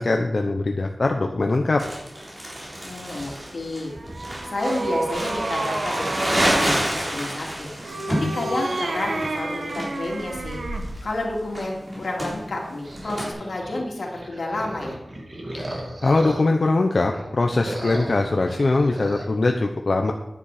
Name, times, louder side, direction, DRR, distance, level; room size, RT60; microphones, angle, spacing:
voice 1, 0.0-1.8 15.5-20.1, left 2 dB, 55° left, 3 dB, 0.8 m, -22 dB
Crumpling crinkling, 1.8-13.3, right 1 dB, 35° right, 3.8 m, -29 dB
voice 2, 2.8-3.9 4.4-10.6 11.0-15.0, left 2 dB, 80° left, -1 dB, 2.6 m, -30 dB
sound 1, 3.8-6.8 7.8-10.9, right 2 dB, 75° right, 1.2 m, -30 dB
sound 2, 12.8-16.7 17.1-19.3, right 1 dB, 50° right, 2.3 m, -36 dB
10.0 x 9.6 x 4.9 m, 0.95 s
wide cardioid pair, 95°, 0 cm